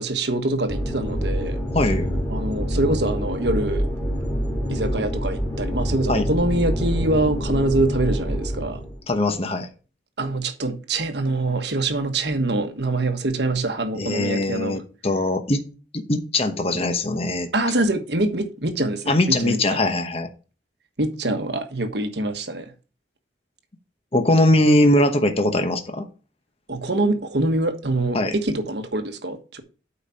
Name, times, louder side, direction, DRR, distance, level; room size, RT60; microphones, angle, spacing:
voice 1, 0.0-1.6 2.3-3.9 4.7-8.8 10.2-14.8 17.5-19.8 21.0-22.7 26.7-29.6, right 2 dB, 65° right, 1.4 m, -24 dB
sound 1, 0.7-9.0, equal, 10° left, 2.5 m, -26 dB
voice 2, 1.7-2.1 6.1-6.3 9.1-9.7 14.0-15.6 15.9-17.5 19.1-20.3 24.1-26.1 28.1-28.3, left 1 dB, 35° left, 1.0 m, -21 dB
8.4 x 4.8 x 5.6 m
head